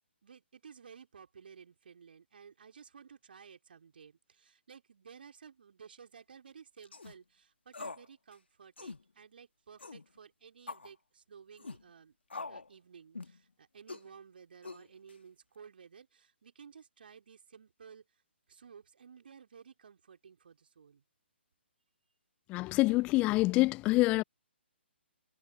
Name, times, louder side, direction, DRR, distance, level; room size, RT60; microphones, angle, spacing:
voice 1, 0.2-12.2 12.4-18.2 18.5-21.0, right 6 dB, 55° right, 4.6 m, -55 dB
sound 1, 6.8-7.2 7.7-8.1 8.3-8.4 8.8-9.0 9.8-10.0 10.7-10.9 11.6-11.8 12.3-12.7 13.1-13.4 13.9-14.1 14.6-15.1, left 3 dB, 70° left, 3.0 m, -44 dB
voice 2, 22.5-24.2, left 21 dB, 20° left, 0.6 m, -26 dB
figure-of-eight pair, 130°, 6 cm